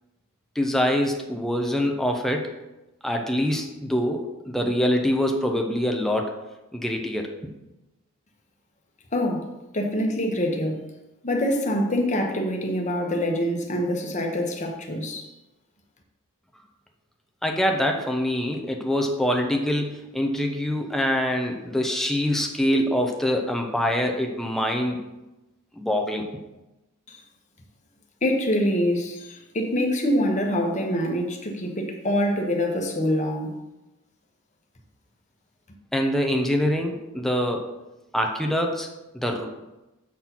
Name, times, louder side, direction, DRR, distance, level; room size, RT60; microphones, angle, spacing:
voice 1, 0.5-2.5 3.0-6.4 6.7-7.5 17.4-25.0 25.8-26.3 35.9-37.7 38.1-38.9 39.1-39.5, equal, ahead, 2 dB, 0.8 m, -24 dB
voice 2, 9.1-9.5 9.7-10.8 11.2-15.3 27.1-27.2 28.2-33.6, equal, 35° left, 2 dB, 1.2 m, -25 dB
7.4 x 4.3 x 5.9 m, 1.0 s
head